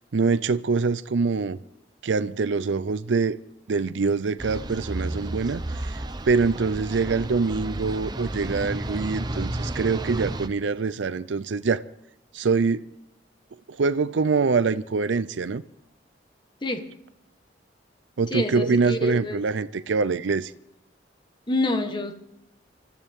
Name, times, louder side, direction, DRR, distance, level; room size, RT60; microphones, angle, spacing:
voice 1, 0.1-1.6 2.0-3.4 3.7-11.8 12.3-12.8 13.7-15.6 18.2-20.5, right 4 dB, 85° right, 0.5 m, -24 dB
sound 1, 4.4-10.5, right 1 dB, 20° right, 0.7 m, -32 dB
voice 2, 18.3-19.4 21.5-22.1, left 2 dB, 25° left, 1.3 m, -27 dB
24.5 x 14.0 x 3.6 m
head